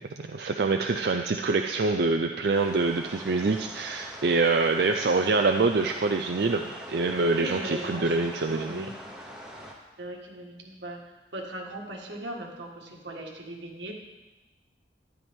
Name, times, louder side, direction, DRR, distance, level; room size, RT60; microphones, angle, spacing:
voice 1, 0.2-8.9, right 3 dB, 65° right, 4 dB, 0.5 m, -25 dB
sound 1, 2.5-9.7, equal, 5° right, 1.2 m, -43 dB
voice 2, 7.3-8.9 10.0-11.0 11.3-13.9, right 1 dB, 90° right, 1 dB, 1.8 m, -38 dB
12.5 x 9.6 x 3.6 m, 1.1 s
head